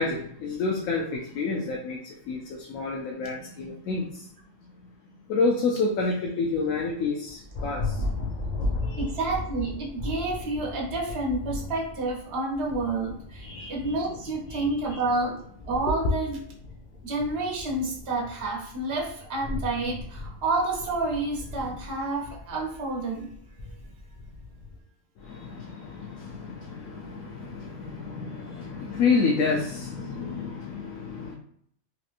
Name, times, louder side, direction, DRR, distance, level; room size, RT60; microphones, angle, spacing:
voice 1, 0.0-4.3 5.3-8.0 8.8-9.1 13.4-13.9 14.5-14.6 15.9-16.0 25.2-31.3, left 4 dB, 90° left, -1 dB, 1.0 m, -29 dB
Thunder, 7.3-24.8, left 2 dB, 55° left, 0.5 m, -37 dB
voice 2, 9.0-15.4 15.7-16.4 17.0-23.3, right 2 dB, 55° right, -3 dB, 1.1 m, -29 dB
3.1 x 2.9 x 2.4 m, 0.65 s
omnidirectional pair, 1.4 m